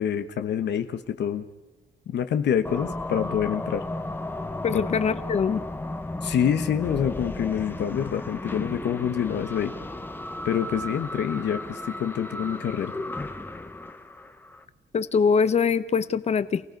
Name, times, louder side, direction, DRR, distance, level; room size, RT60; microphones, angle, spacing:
voice 1, 0.0-1.4 2.1-3.8 4.7-4.8 6.2-9.7 10.4-12.9, left 9 dB, 70° left, 9 dB, 1.2 m, -26 dB
sound 1, 2.6-14.6, left 2 dB, 10° left, 1.0 m, -34 dB
voice 2, 4.6-5.6 14.9-16.6, left 6 dB, 35° left, 15 dB, 0.8 m, -23 dB
29.0 x 18.0 x 5.3 m, 1.0 s
wide cardioid pair, 155°, 18 cm